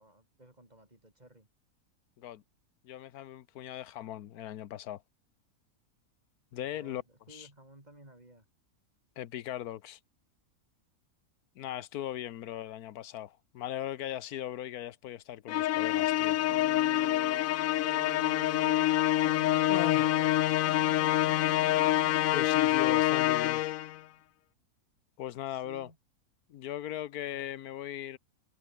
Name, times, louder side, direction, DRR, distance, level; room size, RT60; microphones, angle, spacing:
voice 1, 0.0-1.5 6.6-8.5 19.6-21.6 25.5-26.0 27.2-27.6, right 1 dB, 25° right, 4.7 m, -56 dB
voice 2, 2.8-5.0 6.5-7.0 7.3-7.5 9.2-10.0 11.5-16.4 19.7-20.2 22.3-23.6 25.2-25.9 26.5-28.2, left 12 dB, 90° left, 1.3 m, -38 dB
Musical instrument, 15.5-24.0, left 14 dB, 70° left, 0.9 m, -26 dB
sound 1, 16.5-22.7 23.7-23.8, right 8 dB, 90° right, 1.8 m, -48 dB
omnidirectional pair, 1.6 m